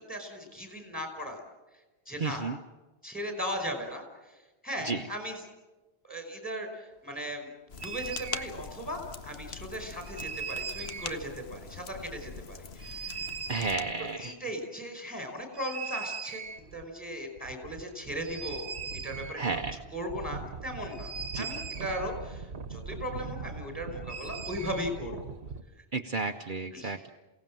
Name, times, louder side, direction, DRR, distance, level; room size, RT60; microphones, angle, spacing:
voice 1, 0.0-1.4 2.1-2.5 3.0-5.4 6.0-7.5 7.8-13.3 14.2-19.6 19.9-25.3 25.8-25.9 26.7-27.0, equal, 10° left, 5 dB, 5.2 m, -38 dB
voice 2, 2.2-2.6 4.8-5.0 13.5-14.3 19.4-19.8 21.3-21.5 25.9-27.1, right 4 dB, 50° right, 4 dB, 1.0 m, -32 dB
sound 1, 7.7-14.2, left 5 dB, 70° left, 1.2 m, -43 dB
sound 2, 7.8-8.5 10.0-11.2 12.8-13.9 15.5-16.9 17.1-17.2 17.4-25.6, right 5 dB, 75° right, 1.5 m, -39 dB
28.5 x 17.5 x 7.6 m, 1.1 s
omnidirectional pair, 1.1 m